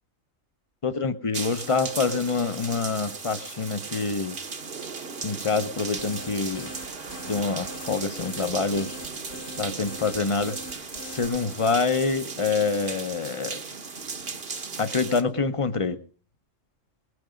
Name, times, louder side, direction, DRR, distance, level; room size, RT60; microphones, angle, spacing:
voice 1, 0.8-4.4 5.2-6.7 7.3-9.0 9.6-13.6 14.8-16.0, left 4 dB, 30° left, 12 dB, 0.8 m, -26 dB
sound 1, 1.3-15.2, right 4 dB, 50° right, 1.5 m, -36 dB
sound 2, 5.7-11.3, left 1 dB, 75° left, 3.0 m, -43 dB
20.0 x 9.6 x 5.1 m, 0.41 s
omnidirectional pair, 1.3 m